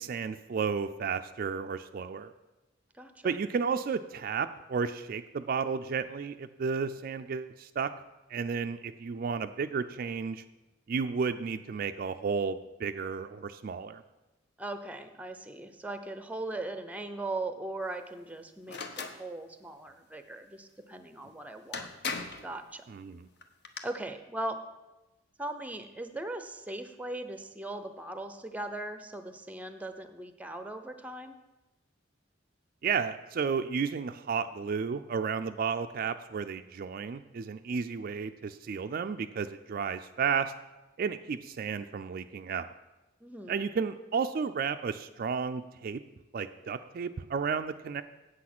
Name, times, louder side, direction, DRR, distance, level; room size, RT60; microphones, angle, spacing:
voice 1, 0.0-2.3 3.2-7.9 8.3-10.4 10.9-14.0 22.9-23.3 32.8-40.5 41.0-42.7 43.5-46.0 46.3-48.0, right 5 dB, 50° right, 9 dB, 0.3 m, -32 dB
voice 2, 3.0-3.3 14.6-21.9 22.4-22.8 23.8-24.6 25.4-31.4 43.2-43.6, right 2 dB, 10° right, 9 dB, 0.6 m, -39 dB
sound 1, 18.7-19.2 21.2-21.3 21.7-22.5 23.4-23.8, left 4 dB, 60° left, 0.9 m, -37 dB
8.4 x 7.8 x 6.0 m, 1.0 s
head